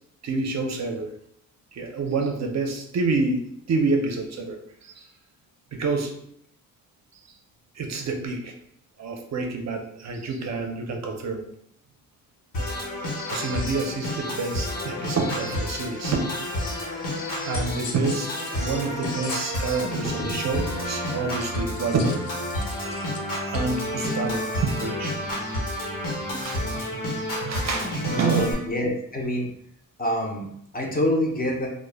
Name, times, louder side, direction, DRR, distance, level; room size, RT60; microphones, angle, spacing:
voice 1, 0.2-1.1 1.7-5.0 5.7-6.1 7.8-8.5 9.0-11.4 13.3-16.4 17.1-22.3 23.5-25.2 26.3-28.5, right 4 dB, 55° right, 3 dB, 0.5 m, -28 dB
Organ, 12.5-28.5, left 1 dB, 70° left, 1.0 m, -30 dB
sound 1, 17.2-19.9 21.4-24.3, left 4 dB, 90° left, 0.5 m, -42 dB
voice 2, 28.2-29.5 30.0-31.7, left 1 dB, 25° left, -1 dB, 0.5 m, -27 dB
2.1 x 2.0 x 3.2 m, 0.70 s
wide cardioid pair, 110°, 34 cm